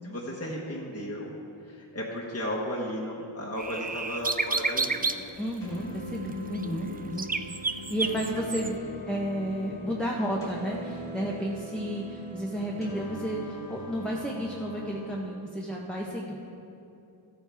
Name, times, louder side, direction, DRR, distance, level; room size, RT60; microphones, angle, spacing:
voice 1, 0.0-1.3 1.6-5.3 6.6-7.5, equal, 30° left, -4 dB, 1.3 m, -35 dB
sound 1, 3.6-5.2 6.6-6.7 7.2-8.7, right 3 dB, 20° right, 0.4 m, -29 dB
voice 2, 5.4-7.3 7.9-8.8 9.1-16.3, equal, ahead, -3 dB, 1.1 m, -32 dB
sound 2, 5.6-15.2, left 1 dB, 85° left, 3.0 m, -41 dB
15.0 x 9.1 x 3.5 m, 2.8 s
wide cardioid pair, 65°, 48 cm